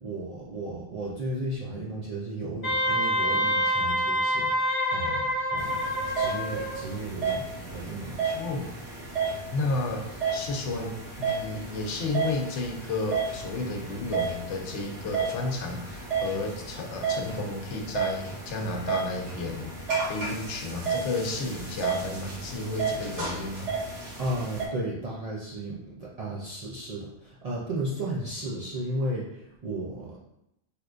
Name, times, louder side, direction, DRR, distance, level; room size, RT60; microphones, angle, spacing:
voice 1, 0.0-5.8 6.1-8.3 24.2-30.2, right 1 dB, 60° right, -6 dB, 0.4 m, -34 dB
Wind instrument woodwind instrument, 2.6-6.8, equal, 30° left, 0.8 m, -27 dB
sound 1, 5.6-24.7, right 4 dB, 80° right, 1.2 m, -33 dB
voice 2, 8.3-8.7 9.5-19.7 20.1-23.7, left 2 dB, 80° left, 2 dB, 0.9 m, -32 dB
3.4 x 3.0 x 2.4 m, 0.86 s
omnidirectional pair, 1.2 m